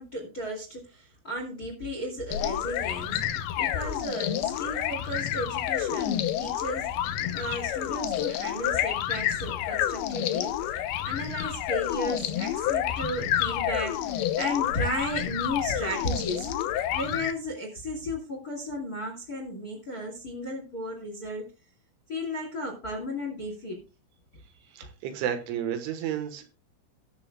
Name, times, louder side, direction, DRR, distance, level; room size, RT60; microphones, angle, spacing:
voice 1, 0.0-10.5 10.8-16.5 16.9-21.5 22.1-23.8, equal, 30° left, 2 dB, 1.8 m, -34 dB
sound 1, 2.3-17.3, left 11 dB, 80° left, 2.3 m, -29 dB
voice 2, 24.7-26.5, right 9 dB, 80° right, 8 dB, 3.7 m, -32 dB
20.5 x 6.9 x 2.3 m, 0.31 s
omnidirectional pair, 5.6 m